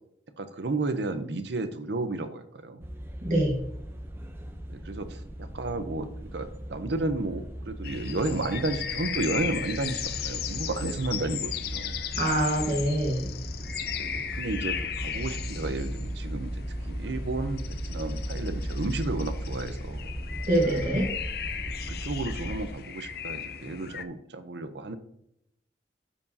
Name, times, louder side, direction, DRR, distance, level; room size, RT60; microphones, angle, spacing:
voice 1, 0.4-2.8 4.7-6.1 6.3-12.0 14.0-16.6 16.9-20.1 21.7-25.0, right 2 dB, 75° right, 10 dB, 0.7 m, -32 dB
sound 1, 2.8-22.7, equal, 15° right, 0.6 m, -37 dB
voice 2, 3.2-3.6 12.2-13.3 20.5-21.1, right 1 dB, 45° right, -2 dB, 1.4 m, -25 dB
sound 2, 7.8-24.0, left 8 dB, 55° left, 0.5 m, -36 dB
12.5 x 4.7 x 2.7 m, 0.76 s
head